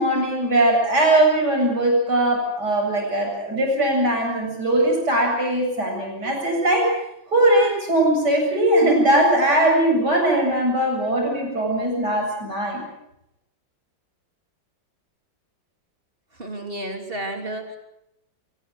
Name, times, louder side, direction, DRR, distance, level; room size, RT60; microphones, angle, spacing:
voice 1, 0.0-6.9 7.3-12.8, right 1 dB, 55° right, 0 dB, 8.4 m, -20 dB
voice 2, 16.3-17.8, right 1 dB, 30° right, 5 dB, 3.4 m, -31 dB
24.0 x 19.5 x 8.1 m, 0.83 s
omnidirectional pair, 2.1 m